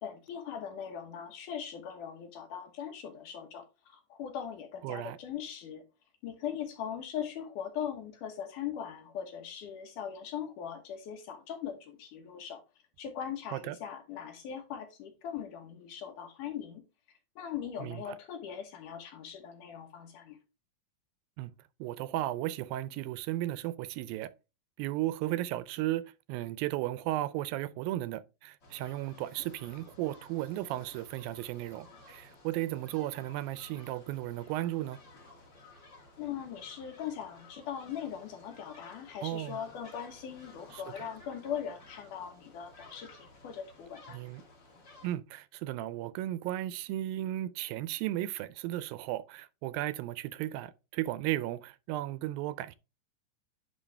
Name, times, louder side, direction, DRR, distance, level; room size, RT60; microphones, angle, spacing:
voice 1, 0.0-5.8 6.2-12.6 13.0-16.8 17.4-20.4 36.2-44.2, left 8 dB, 70° left, 2.5 m, -40 dB
voice 2, 4.8-5.2 13.5-13.8 17.8-18.0 21.4-21.5 21.8-24.3 24.8-26.0 26.3-35.0 39.2-39.6 40.7-40.8 44.1-44.4 45.0-52.7, right 15 dB, 85° right, 2.3 m, -35 dB
sound 1, 28.6-45.1, left 2 dB, 35° left, 2.3 m, -55 dB
10.0 x 3.8 x 3.3 m
omnidirectional pair, 4.1 m